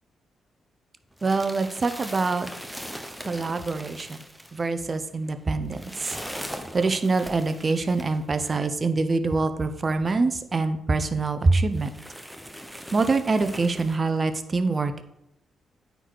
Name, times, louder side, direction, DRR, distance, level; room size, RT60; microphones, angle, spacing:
sound 1, 1.1-8.6 9.4-9.5 9.8-9.9 10.6-10.7 11.1-11.2 11.7-14.0, equal, 5° right, 1.0 m, -40 dB
voice 1, 1.2-2.5 3.2-4.1 4.5-6.1 6.7-11.9 12.9-15.0, right 3 dB, 40° right, 10 dB, 0.8 m, -25 dB
9.0 x 4.0 x 4.7 m, 0.82 s
supercardioid pair, 50°, 0 cm